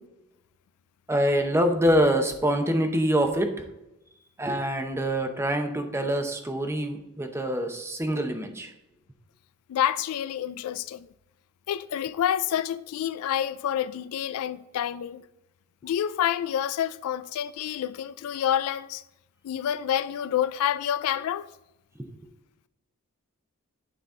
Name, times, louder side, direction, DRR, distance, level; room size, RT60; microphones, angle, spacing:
voice 1, 1.1-3.7 4.4-8.7, equal, 10° right, 0.7 m, -25 dB
voice 2, 9.7-11.1 11.7-15.2 15.8-19.0 19.4-21.4, left 10 dB, 75° left, 0.3 m, -28 dB
9.5 x 3.9 x 3.7 m
head